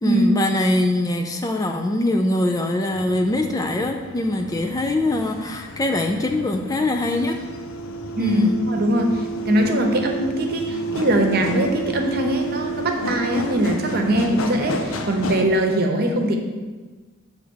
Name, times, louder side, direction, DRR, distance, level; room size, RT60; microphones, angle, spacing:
voice 1, 0.0-7.4 8.2-8.6, left 1 dB, 15° left, 4 dB, 0.4 m, -22 dB
sound 1, 2.9-15.4, right 1 dB, 75° left, 0.7 m, -31 dB
voice 2, 8.2-16.4, right 1 dB, 45° right, 3 dB, 0.9 m, -21 dB
8.2 x 3.4 x 6.3 m, 1.3 s
head